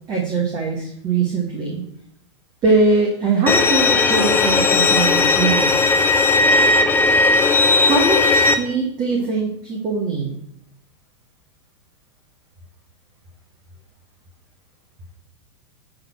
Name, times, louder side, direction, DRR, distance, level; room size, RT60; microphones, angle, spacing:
voice 1, 0.1-1.8 2.6-5.6 7.8-10.4, right 3 dB, 30° right, 0 dB, 1.9 m, -21 dB
Bowed string instrument, 3.5-8.5, left 3 dB, 15° left, 0.8 m, -16 dB
10.5 x 4.1 x 6.1 m, 0.72 s
figure-of-eight pair, 100°, 15 cm